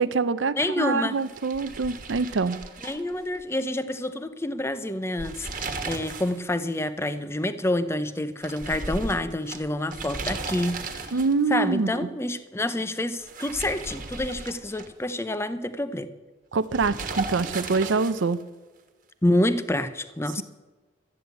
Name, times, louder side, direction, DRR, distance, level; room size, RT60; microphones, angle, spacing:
voice 1, 0.0-2.6 11.1-12.1 16.5-18.4, right 4 dB, 75° right, 15 dB, 0.6 m, -25 dB
voice 2, 0.6-1.2 2.8-11.1 11.5-16.1 19.2-20.4, left 1 dB, 15° left, 12 dB, 0.6 m, -28 dB
sound 1, 1.1-3.6 3.9-4.0 5.0-6.4 6.7-6.8 8.4-11.5 13.1-15.1 16.7-18.4, right 3 dB, 40° right, 1.5 m, -36 dB
13.0 x 9.6 x 8.1 m, 1.3 s
head